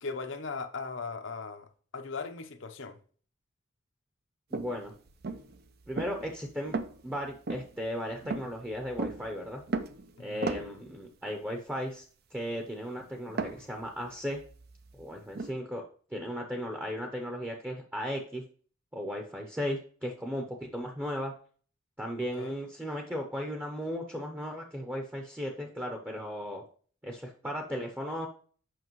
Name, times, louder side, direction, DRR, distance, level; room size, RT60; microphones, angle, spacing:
voice 1, 0.0-1.6 1.9-3.0 10.2-10.5 22.4-22.5, left 4 dB, 60° left, 0.8 m, -38 dB
voice 2, 4.5-4.9 5.9-6.8 7.0-9.6 10.2-12.0 12.3-14.4 14.9-18.4 18.9-21.3 22.0-26.6 27.0-28.3, equal, 10° right, 0.8 m, -36 dB
sound 1, 4.5-11.0 13.3-15.5, right 3 dB, 50° right, 0.5 m, -37 dB
7.6 x 5.8 x 3.1 m
head